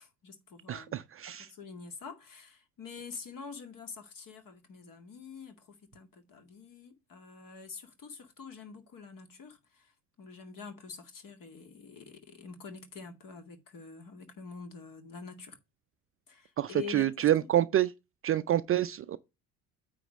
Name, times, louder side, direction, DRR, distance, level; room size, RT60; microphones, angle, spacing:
voice 1, 0.0-1.0 1.4-9.9 10.2-15.6 16.3-17.3, left 5 dB, 45° left, 2.1 m, -46 dB
voice 2, 0.7-1.5 16.6-17.9 18.2-19.2, right 12 dB, 30° right, 0.5 m, -27 dB
9.1 x 3.4 x 6.3 m
figure-of-eight pair, 60°, 46 cm